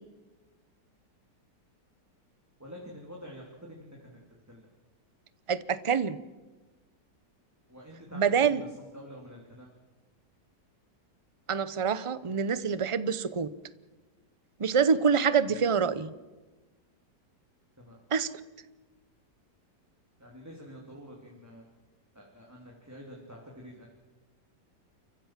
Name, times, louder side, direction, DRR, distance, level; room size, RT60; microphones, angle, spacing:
voice 1, 2.6-4.2 4.5-4.7 7.7-9.7 15.4-15.7 17.8-18.0 20.2-21.6 22.1-23.9, equal, 10° right, -2 dB, 2.8 m, -47 dB
voice 2, 5.5-6.2 8.1-8.6 11.5-13.5 14.6-16.1 18.1-18.3, right 6 dB, 40° right, 15 dB, 0.4 m, -26 dB
29.0 x 15.0 x 7.5 m, 1.2 s
omnidirectional pair, 1.8 m